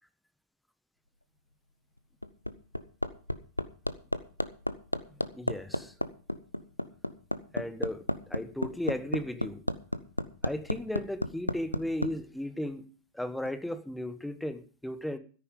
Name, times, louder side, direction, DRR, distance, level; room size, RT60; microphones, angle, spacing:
Hammer, 2.0-12.1 13.5-13.6, left 1 dB, 85° left, 0.7 m, -32 dB
voice 1, 5.1-5.9 7.5-9.6 10.4-12.9 13.1-15.2, left 1 dB, 5° left, 1.3 m, -35 dB
13.0 x 10.5 x 5.3 m
figure-of-eight pair, 90°, 0 cm